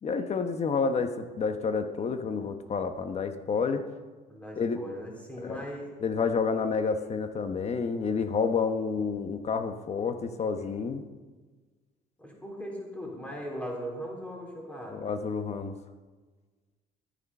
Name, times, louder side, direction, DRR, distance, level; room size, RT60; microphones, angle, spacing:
voice 1, 0.0-3.9 4.6-4.8 5.4-5.6 6.0-11.0 14.9-15.7, left 5 dB, 40° left, 8 dB, 1.2 m, -29 dB
voice 2, 4.3-5.9 12.2-15.0, equal, 10° left, -1 dB, 3.8 m, -39 dB
13.0 x 9.8 x 5.5 m, 1.4 s
cardioid pair, 110°, 17 cm